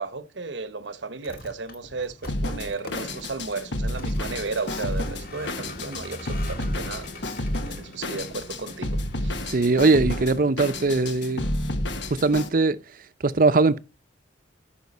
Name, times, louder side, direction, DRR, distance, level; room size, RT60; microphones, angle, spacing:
voice 1, 0.0-9.4, right 4 dB, 75° right, 0.9 m, -34 dB
Vehicle, 1.1-10.5, left 2 dB, 55° left, 2.0 m, -44 dB
Drum kit, 2.3-12.5, left 1 dB, 75° left, 1.3 m, -30 dB
voice 2, 9.5-11.4 12.1-12.8 13.2-13.8, right 3 dB, 50° right, 0.6 m, -20 dB
14.0 x 5.8 x 4.1 m
head